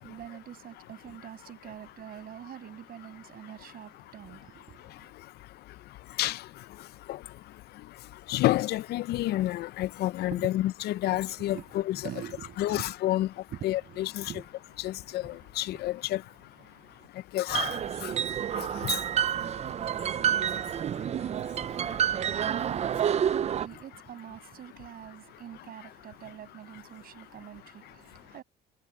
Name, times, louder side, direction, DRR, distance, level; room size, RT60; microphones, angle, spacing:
voice 1, 0.0-5.1 10.3-10.5 11.1-11.2 11.5-12.9 13.5-15.9 16.7-17.1 22.3-28.4, right 11 dB, 60° right, 6.6 m, -45 dB
voice 2, 8.3-12.1 12.6-13.3 13.6-14.2 14.8-16.2 17.3-18.1 18.6-19.0, left 15 dB, 70° left, 0.6 m, -29 dB
sound 1, 17.5-23.7, right 9 dB, 40° right, 0.5 m, -29 dB
cardioid pair, 100°, 17 cm